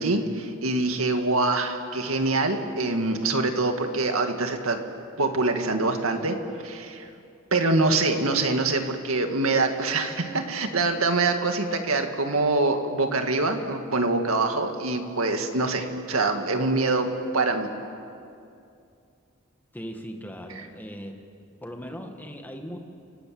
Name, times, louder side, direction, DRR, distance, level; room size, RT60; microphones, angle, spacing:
voice 1, 0.0-4.8 5.2-6.4 6.6-7.1 7.5-17.7, right 3 dB, 75° right, 5 dB, 2.1 m, -24 dB
voice 2, 19.7-21.2 21.6-22.8, equal, 10° left, 4 dB, 1.9 m, -38 dB
29.5 x 18.5 x 7.9 m, 2.5 s
head